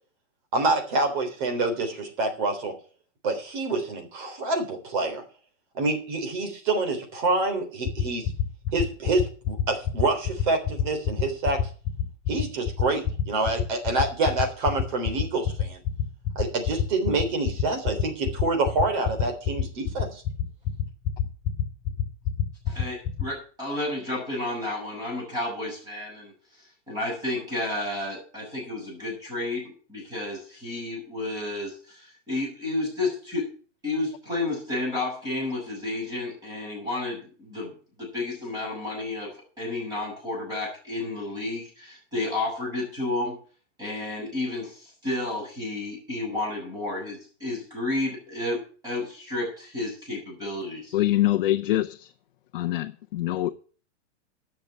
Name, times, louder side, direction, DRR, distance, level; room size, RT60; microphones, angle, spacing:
voice 1, 0.5-2.7 3.2-5.2 5.8-8.3 8.7-11.6 12.3-15.8 16.4-20.2, right 2 dB, 40° right, 3.6 m, -27 dB
sound 1, 7.8-23.2, left 10 dB, 20° left, 3.1 m, -25 dB
voice 2, 22.7-26.3 26.9-33.5 33.8-37.7 38.0-43.4 43.8-51.0, left 2 dB, 10° right, 7.4 m, -31 dB
voice 3, 50.9-52.1 52.5-53.5, left 14 dB, 45° left, 0.7 m, -24 dB
10.5 x 6.8 x 8.6 m
supercardioid pair, 170°, 37 cm